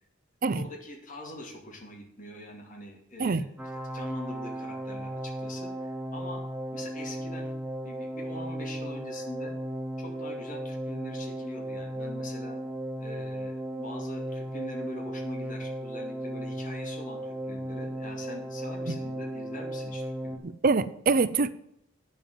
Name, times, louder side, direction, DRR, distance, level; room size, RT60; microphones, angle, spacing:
voice 1, 0.5-3.4 3.9-6.4 6.7-7.5 7.8-9.6 10.0-12.6 13.0-20.4, left 1 dB, 45° left, 2.5 m, -43 dB
sound 1, 3.6-20.4, right 1 dB, 5° right, 0.9 m, -35 dB
voice 2, 20.6-21.5, right 4 dB, 50° right, 0.5 m, -24 dB
9.0 x 7.3 x 6.8 m
head